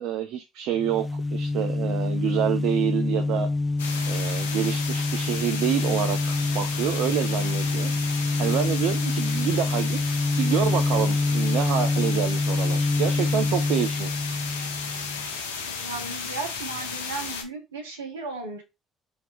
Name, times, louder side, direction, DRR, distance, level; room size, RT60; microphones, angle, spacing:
voice 1, 0.0-3.5 4.1-7.9 8.4-14.2, right 10 dB, 65° right, 7 dB, 0.4 m, -28 dB
sound 1, 0.8-15.3, left 3 dB, 15° left, 0.4 m, -26 dB
sound 2, 3.8-17.4, left 5 dB, 80° left, 0.8 m, -34 dB
voice 2, 15.6-18.6, right 3 dB, 85° right, 3 dB, 1.1 m, -35 dB
3.5 x 2.8 x 3.8 m, 0.24 s
hypercardioid pair, 50°, 0 cm